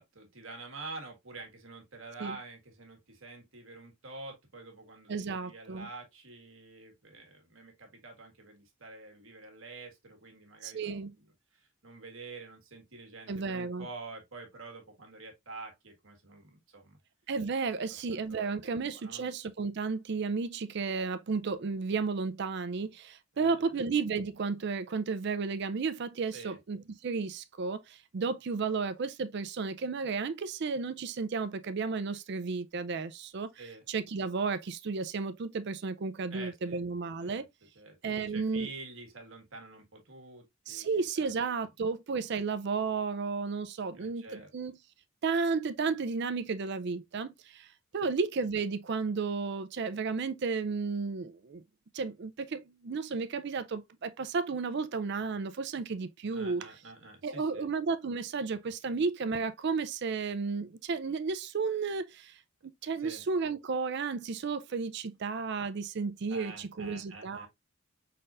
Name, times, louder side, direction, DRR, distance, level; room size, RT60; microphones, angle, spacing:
voice 1, 0.0-17.0 18.1-19.2 23.3-23.8 26.3-26.6 33.6-33.8 36.3-36.8 37.2-37.5 37.7-41.7 43.9-44.5 48.0-48.1 56.3-57.7 58.6-59.0 63.0-63.2 66.3-67.5, right 3 dB, 65° right, 1.6 m, -48 dB
voice 2, 5.1-5.9 10.6-11.1 13.3-13.9 17.3-33.5 33.9-37.5 38.0-38.7 40.7-44.8 45.2-51.6 51.9-56.7 57.2-62.4 62.6-67.5, right 4 dB, 50° right, 0.4 m, -33 dB
5.4 x 4.1 x 2.4 m
head